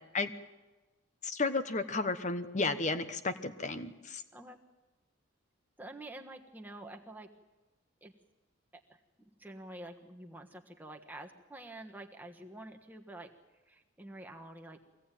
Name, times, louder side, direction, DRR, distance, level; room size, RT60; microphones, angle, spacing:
voice 1, 1.2-4.2, left 3 dB, 35° left, 10 dB, 1.1 m, -33 dB
voice 2, 5.8-7.3 8.0-8.1 8.9-13.3 13.6-14.8, right 1 dB, 10° right, 2 dB, 1.4 m, -48 dB
23.5 x 17.0 x 9.2 m, 1.1 s
head